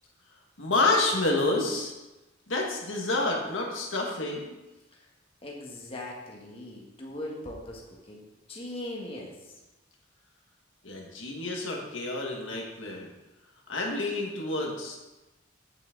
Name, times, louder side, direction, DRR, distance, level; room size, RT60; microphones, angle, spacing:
voice 1, 0.6-1.9 2.5-4.6 10.8-13.1 13.7-15.0, left 2 dB, 80° left, -1 dB, 1.8 m, -28 dB
voice 2, 5.4-8.2 8.5-9.5, left 1 dB, 30° left, -2 dB, 1.4 m, -40 dB
8.7 x 7.9 x 3.8 m, 1.0 s
head